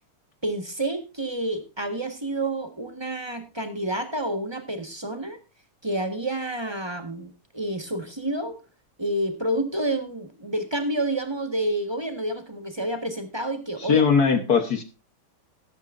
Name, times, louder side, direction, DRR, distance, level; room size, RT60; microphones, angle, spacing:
voice 1, 0.4-5.4 5.8-8.6 9.0-14.1, right 1 dB, 15° right, 7 dB, 1.3 m, -29 dB
voice 2, 13.8-14.8, left 6 dB, 55° left, 9 dB, 1.4 m, -20 dB
13.5 x 13.0 x 2.6 m, 0.29 s
omnidirectional pair, 2.3 m